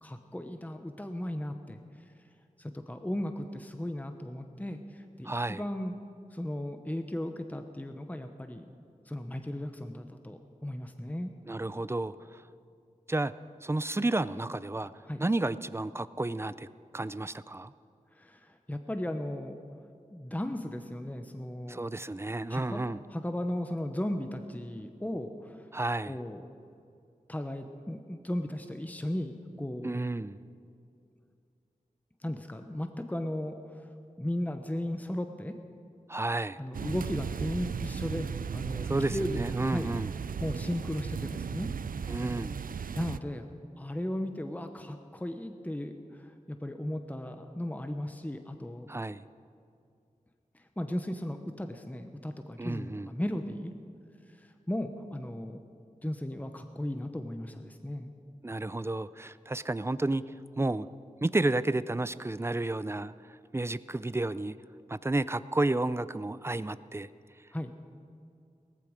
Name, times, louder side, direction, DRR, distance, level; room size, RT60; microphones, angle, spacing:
voice 1, 0.0-1.8 2.6-6.0 6.3-8.7 9.1-11.3 15.0-15.2 18.1-19.5 20.1-21.8 22.5-25.7 26.1-26.4 27.3-29.9 32.2-33.9 34.2-35.5 36.6-38.3 38.5-39.9 40.4-41.7 43.0-48.9 50.5-53.7 54.4-55.6 56.0-58.1 67.5-67.8, left 1 dB, 10° left, 7 dB, 0.9 m, -36 dB
voice 2, 5.2-5.6 11.5-12.4 13.1-13.3 13.6-14.9 15.2-16.7 16.9-17.7 21.7-23.0 25.7-26.1 29.8-30.4 36.1-36.6 38.8-40.1 42.1-42.6 48.9-49.2 52.6-53.1 58.4-60.2 60.6-60.9 61.2-63.1 63.5-64.6 64.9-67.1, right 2 dB, 20° right, 16 dB, 0.4 m, -31 dB
sound 1, 36.7-43.2, right 6 dB, 85° right, 0.4 m, -36 dB
18.0 x 14.5 x 5.1 m, 2.5 s
wide cardioid pair, 55°, 14 cm